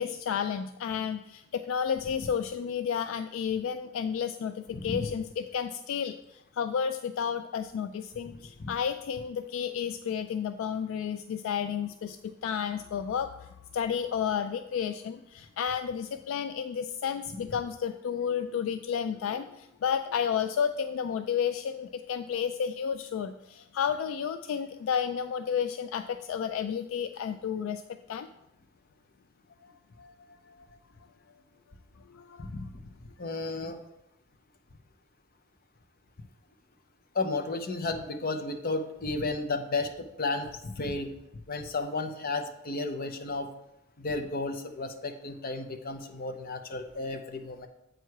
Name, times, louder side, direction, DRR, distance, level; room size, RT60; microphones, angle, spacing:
voice 1, 0.0-27.8 28.1-28.3 30.0-30.7 32.1-32.5, left 7 dB, 75° left, 10 dB, 0.3 m, -32 dB
voice 2, 4.7-5.1 8.6-8.7 32.5-32.7 33.2-33.8 37.1-39.9 40.2-41.1 41.5-43.5 44.0-47.7, left 3 dB, 50° left, 6 dB, 0.7 m, -33 dB
7.9 x 4.7 x 4.7 m, 0.86 s
head